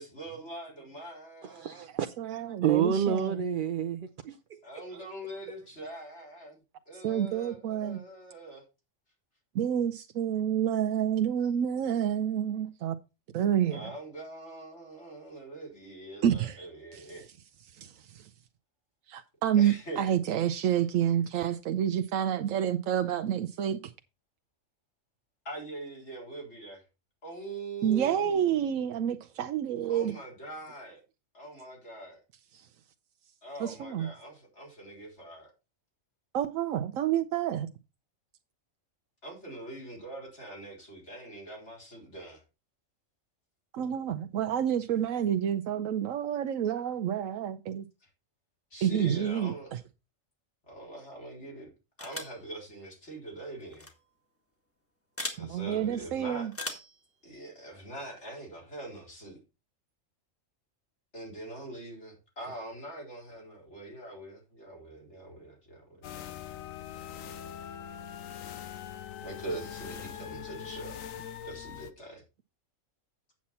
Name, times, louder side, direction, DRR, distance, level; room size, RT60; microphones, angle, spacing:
voice 1, 0.0-1.8 4.6-6.6 6.9-8.6 13.7-17.3 19.5-20.1 25.4-26.8 27.2-28.5 29.9-31.0 31.3-32.2 33.4-35.5 39.2-42.4 48.0-48.1 48.7-49.8 50.7-51.7 52.0-53.9 55.3-56.5 57.2-59.4 61.1-65.9 69.2-71.0 71.4-72.2, right 1 dB, 60° left, 4.3 m, -43 dB
voice 2, 1.4-4.6 4.9-5.0, right 8 dB, 55° right, 0.6 m, -30 dB
voice 3, 2.2-3.4 7.0-8.0 9.5-12.9 13.3-13.9 16.2-16.6 16.9-17.0 17.7-18.3 19.1-23.8 27.8-30.1 32.5-32.7 33.6-34.1 36.3-37.7 43.7-47.9 48.8-49.5 55.4-56.5, right 9 dB, 90° right, 1.0 m, -29 dB
sound 1, 52.0-52.4 53.7-53.9 55.2-55.4 56.5-57.0, left 1 dB, 10° left, 1.5 m, -37 dB
sound 2, 66.0-71.9, left 9 dB, 85° left, 1.2 m, -42 dB
8.5 x 7.3 x 4.2 m
omnidirectional pair, 1.3 m